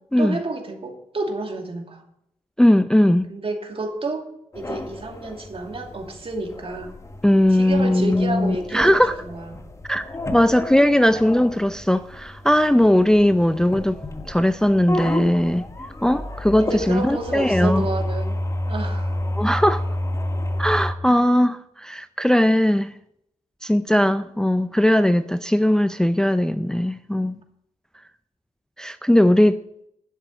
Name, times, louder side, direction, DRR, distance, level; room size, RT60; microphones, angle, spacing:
voice 1, 0.2-2.0 3.3-4.3 4.5-7.0 7.5-9.5 16.6-18.4 18.7-19.2, right 2 dB, 45° right, 2.5 m, -30 dB
voice 2, 2.6-3.3 7.2-9.1 9.9-10.0 10.3-14.0 14.3-15.6 16.0-17.9 19.4-19.8 20.6-22.9 23.6-27.4 28.8-29.6, left 1 dB, 5° left, 0.5 m, -19 dB
sound 1, 4.5-20.9, left 1 dB, 20° left, 1.6 m, -30 dB
11.5 x 7.6 x 6.4 m
supercardioid pair, 50°, 13 cm